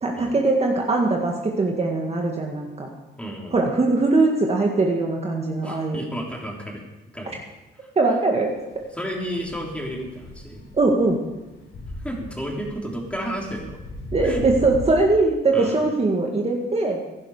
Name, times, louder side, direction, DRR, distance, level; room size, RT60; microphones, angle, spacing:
voice 1, 0.0-2.9 3.5-6.0 8.0-8.5 10.7-11.2 14.1-17.0, right 3 dB, 30° right, 0 dB, 1.8 m, -21 dB
voice 2, 3.2-3.6 5.6-6.8 7.1-7.4 7.8-7.9 8.9-10.6 12.0-13.8 14.2-14.4 15.5-15.7, equal, 5° left, -1 dB, 3.6 m, -32 dB
sound 1, 8.4-14.9, left 1 dB, 75° left, 6.0 m, -38 dB
16.5 x 11.0 x 5.0 m, 1.1 s
cardioid pair, 90°, 20 cm